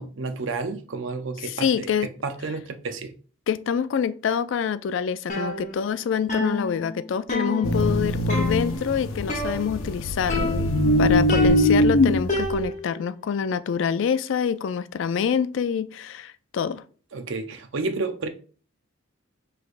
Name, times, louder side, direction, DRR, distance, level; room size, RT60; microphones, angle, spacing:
voice 1, 0.0-3.1 11.3-11.5 17.1-18.3, right 3 dB, 65° right, 0.6 m, -31 dB
voice 2, 1.4-2.1 3.5-10.7 11.0-16.8, left 7 dB, 65° left, 0.3 m, -26 dB
sound 1, 5.3-6.0 6.3-8.0 8.3-8.9 9.3-10.0 10.3-10.9 11.3-13.0, left 1 dB, 35° left, 0.9 m, -30 dB
sound 2, 7.6-12.7, left 1 dB, 90° left, 0.7 m, -22 dB
6.1 x 3.2 x 2.5 m
head